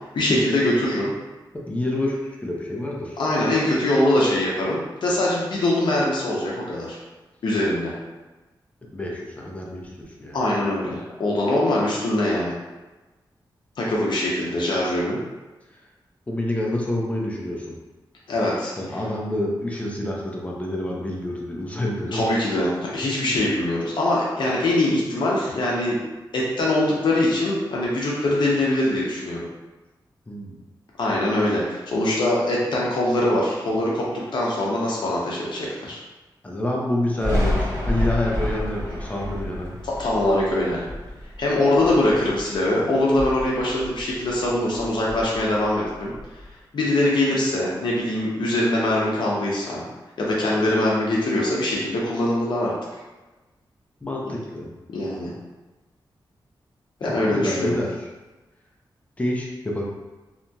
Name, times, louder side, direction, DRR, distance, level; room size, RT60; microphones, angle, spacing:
voice 1, 0.1-1.1 3.2-7.0 7.4-7.9 10.3-12.5 13.8-15.2 18.3-18.7 22.1-26.0 26.3-29.4 31.0-34.0 34.3-36.0 40.0-40.8 41.4-46.1 46.7-49.8 50.2-52.7 54.3-54.4 54.9-55.3 57.0-57.7, left 1 dB, 70° left, -5 dB, 0.6 m, -22 dB
voice 2, 1.5-3.2 8.9-10.4 15.7-15.8 16.3-17.7 18.8-22.2 30.3-30.5 36.4-39.8 54.0-54.7 57.0-58.1 59.2-59.8, left 1 dB, 15° left, -2 dB, 0.4 m, -28 dB
Thunder, 37.2-42.6 43.0-44.5 44.7-46.4, left 1 dB, 35° right, 0.6 m, -29 dB
2.8 x 2.6 x 2.2 m, 1.1 s
wide cardioid pair, 170°, 8 cm